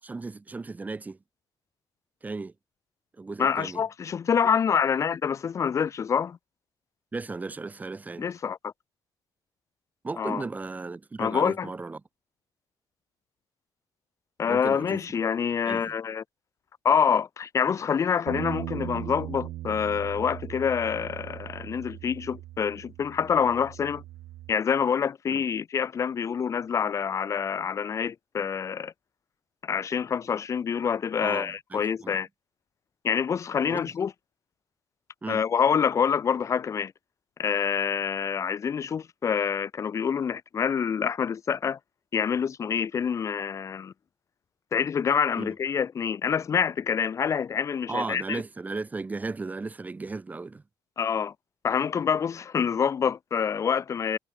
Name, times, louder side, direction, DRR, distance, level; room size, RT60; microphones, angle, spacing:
voice 1, 0.0-1.2 2.2-2.5 3.2-3.8 7.1-8.3 10.0-12.0 14.5-15.0 15.7-15.9 25.3-25.4 31.2-32.2 33.7-33.9 35.2-35.4 45.4-45.5 47.9-50.6, right 3 dB, 15° right, 6.0 m, -35 dB
voice 2, 3.4-6.4 8.2-8.7 10.2-10.4 11.2-11.7 14.4-16.2 16.8-24.0 24.5-28.9 29.6-32.3 33.0-34.1 35.3-36.9 37.4-41.8 42.1-43.9 44.7-48.4 51.0-51.3 51.6-54.2, left 7 dB, 35° left, 1.1 m, -26 dB
Bass guitar, 18.3-24.5, right 15 dB, 85° right, 1.3 m, -39 dB
cardioid pair, 150°, 9 cm